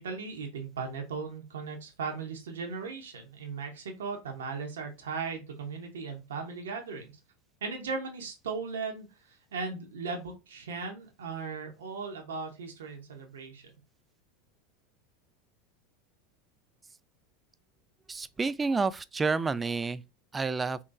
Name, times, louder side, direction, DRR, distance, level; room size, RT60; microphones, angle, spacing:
voice 1, 0.0-7.1 7.6-13.7, right 4 dB, 75° right, 0.8 m, -37 dB
voice 2, 18.1-20.0 20.3-20.8, right 4 dB, 20° right, 0.3 m, -29 dB
4.1 x 2.9 x 2.5 m
figure-of-eight pair, 85°, 0 cm